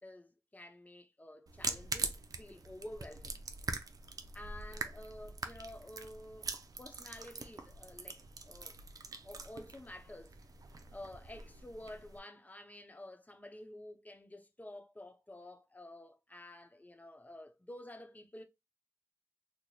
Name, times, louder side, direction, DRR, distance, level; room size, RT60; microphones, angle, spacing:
voice 1, 0.0-3.4 4.3-8.8 9.2-10.4 10.7-18.4, left 1 dB, 25° left, 0.7 m, -51 dB
sound 1, 1.5-12.2, right 4 dB, 75° right, 0.5 m, -43 dB
3.1 x 2.1 x 3.9 m
wide cardioid pair, 70°, 6 cm